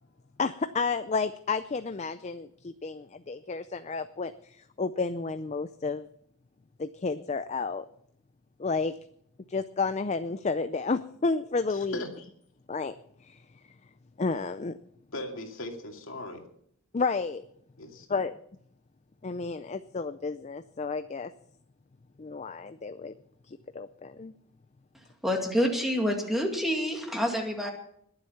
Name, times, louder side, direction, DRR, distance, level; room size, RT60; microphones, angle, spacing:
voice 1, 0.4-6.1 6.8-7.9 8.6-8.9 9.5-12.0 12.7-12.9 13.2-13.4 14.2-14.8 16.9-17.5 18.1-18.4 19.2-21.3 22.2-23.1 23.5-24.3, left 4 dB, 30° left, 11 dB, 0.4 m, -31 dB
voice 2, 11.7-12.3 15.1-16.5 17.8-18.2, left 1 dB, 60° left, 2 dB, 2.5 m, -39 dB
voice 3, 25.2-27.7, equal, ahead, 1 dB, 2.3 m, -27 dB
21.5 x 7.9 x 5.7 m, 0.68 s
head